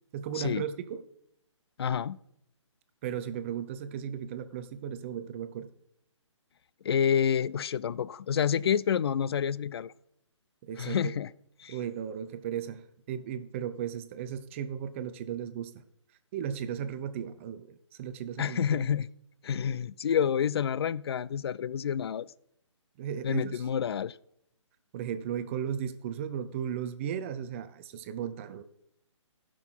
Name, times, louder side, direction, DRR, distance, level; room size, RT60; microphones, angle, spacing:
voice 1, 0.1-1.0 3.0-5.7 10.6-11.1 11.7-15.8 16.3-18.8 23.0-23.6 24.9-28.6, right 9 dB, 25° right, 0.6 m, -36 dB
voice 2, 1.8-2.2 6.8-9.9 10.8-11.3 11.6-11.8 18.4-19.1 19.4-22.3 23.2-24.2, left 8 dB, 55° left, 0.4 m, -28 dB
15.0 x 6.2 x 4.5 m
figure-of-eight pair, 150°, 16 cm